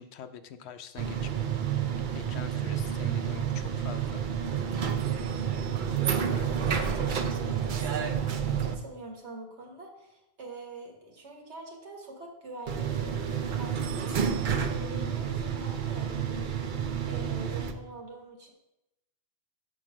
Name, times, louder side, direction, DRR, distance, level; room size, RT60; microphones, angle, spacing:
voice 1, 0.0-1.3 2.1-4.2 6.3-6.6, left 8 dB, 75° left, 10 dB, 0.8 m, -44 dB
sound 1, 1.0-8.7 12.7-17.7, right 8 dB, 55° right, 0.7 m, -30 dB
voice 2, 6.8-13.2 13.5-18.5, right 2 dB, 80° right, 2 dB, 1.6 m, -45 dB
6.0 x 4.7 x 6.0 m, 0.91 s
omnidirectional pair, 1.1 m